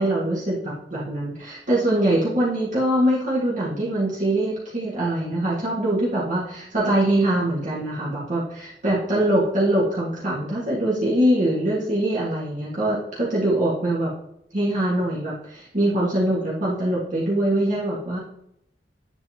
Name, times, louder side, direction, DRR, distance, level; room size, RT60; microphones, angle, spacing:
voice 1, 0.0-14.1 14.5-18.2, right 1 dB, 45° right, -6 dB, 1.6 m, -23 dB
9.6 x 4.0 x 2.8 m, 0.76 s
head